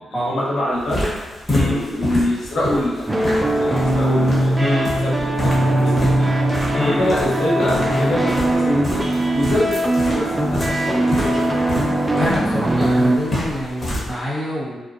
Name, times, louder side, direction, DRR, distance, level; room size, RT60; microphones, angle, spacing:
voice 1, 0.1-1.1 1.6-4.6 5.0-6.3 6.8-9.0 9.3-9.7 10.1-11.4, left 1 dB, 70° left, -6 dB, 0.9 m, -24 dB
sound 1, 0.7-14.1, left 1 dB, 30° left, 1.1 m, -29 dB
voice 2, 1.5-1.9 4.6-4.9 6.7-7.0 11.9-14.8, left 1 dB, 15° left, -10 dB, 0.8 m, -25 dB
sound 2, 3.1-13.2, right 1 dB, 20° right, 0.3 m, -20 dB
2.5 x 2.1 x 2.5 m, 1.2 s
supercardioid pair, 55°, 0 cm